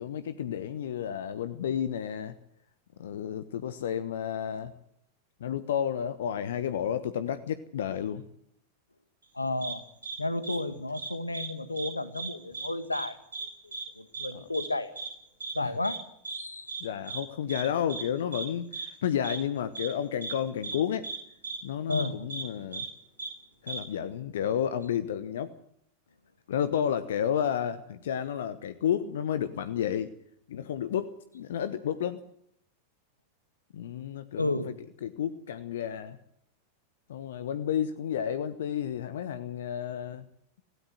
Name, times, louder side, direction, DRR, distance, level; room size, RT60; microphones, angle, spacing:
voice 1, 0.0-2.3 3.0-4.7 5.4-8.2 15.6-15.8 16.8-21.1 21.6-22.8 23.6-25.5 26.5-30.1 30.5-32.2 33.7-34.7 35.0-36.2 37.1-40.2, left 9 dB, 60° left, 13 dB, 1.2 m, -31 dB
voice 2, 9.3-9.8 10.2-13.2 13.6-14.9 15.5-16.0 16.3-16.8 21.9-22.1 34.4-34.7, left 2 dB, 80° left, 12 dB, 1.7 m, -32 dB
sound 1, 9.6-9.7 10.0-10.2 10.4-10.6 10.9-11.5 11.7-11.9 12.1-12.7 12.9-13.1 13.3-13.5 13.7-13.8 14.1-14.3 14.5-14.7 14.9-15.1 15.4-15.5 15.8-16.0 16.2-16.4 16.7-16.8 17.1-17.2 17.5-17.6 17.9-18.0 18.3-18.4 18.7-18.9 19.2-19.4 19.7-19.9 20.2-20.3 20.6-20.8 21.0-21.2 21.4-21.6 21.9-22.0 22.3-22.4 22.7-22.9 23.2-23.3 23.7-23.8, right 4 dB, 75° right, 7.1 m, -36 dB
17.0 x 17.0 x 9.2 m, 0.72 s
figure-of-eight pair, 90°, 0 cm